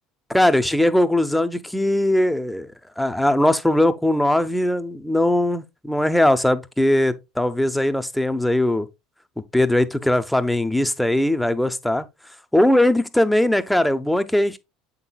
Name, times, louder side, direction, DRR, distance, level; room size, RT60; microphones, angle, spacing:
voice 1, 0.3-2.7 3.0-8.9 9.5-12.1 12.5-14.6, left 1 dB, 5° left, 0.7 m, -20 dB
7.8 x 5.8 x 2.3 m
hypercardioid pair, 80°, 0 cm